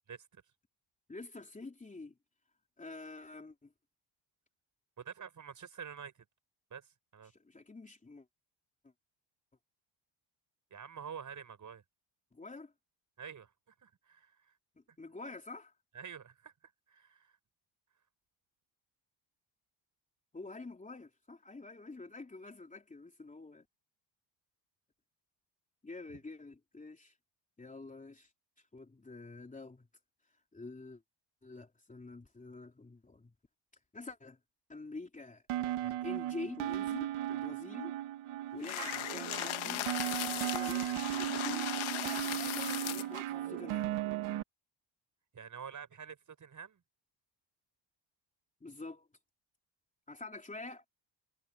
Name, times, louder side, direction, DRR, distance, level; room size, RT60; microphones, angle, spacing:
voice 1, 0.1-0.4 5.0-6.2 6.7-7.3 10.7-11.8 13.2-13.5 13.8-14.5 15.9-17.4 26.1-26.2 45.3-46.8, right 7 dB, 35° right, 6.7 m, -48 dB
voice 2, 1.1-2.1 2.8-3.7 7.3-8.2 12.3-12.7 14.7-15.7 20.3-23.6 25.8-27.1 27.6-28.3 28.7-29.9 30.5-31.0 31.4-33.3 33.9-34.4 34.7-37.9 38.5-39.9 40.2-43.9 48.6-49.1 50.1-50.9, left 3 dB, 15° left, 3.4 m, -47 dB
sound 1, 35.5-44.4, right 13 dB, 80° right, 1.1 m, -36 dB
sound 2, 38.6-43.2, left 13 dB, 70° left, 1.7 m, -38 dB
cardioid pair, 135°, 49 cm